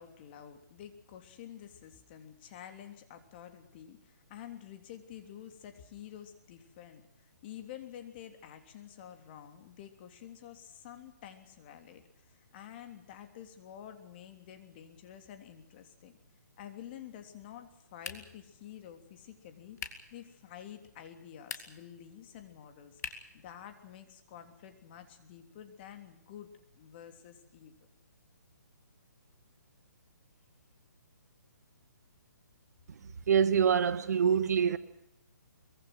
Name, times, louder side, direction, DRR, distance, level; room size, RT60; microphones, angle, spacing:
voice 1, 0.0-16.2 16.6-19.8 20.1-23.0 23.3-26.5 26.8-27.9, left 10 dB, 30° left, 3.3 m, -49 dB
sound 1, 18.0-18.5 19.8-20.1 21.3-21.9 23.0-23.4, left 6 dB, 65° left, 3.4 m, -42 dB
voice 2, 33.3-34.8, right 7 dB, 60° right, 1.7 m, -25 dB
24.0 x 23.0 x 6.3 m
hypercardioid pair, 160°, 10 cm